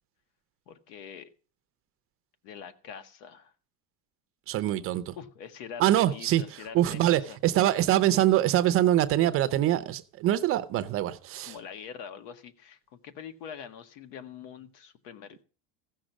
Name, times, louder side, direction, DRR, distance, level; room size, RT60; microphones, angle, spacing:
voice 1, 0.7-1.3 2.4-3.5 5.2-7.4 11.5-15.4, left 7 dB, 85° left, 1.8 m, -44 dB
voice 2, 4.5-5.1 5.8-11.5, right 13 dB, 30° right, 0.5 m, -24 dB
15.5 x 6.4 x 6.1 m
cardioid pair, 170°, 46 cm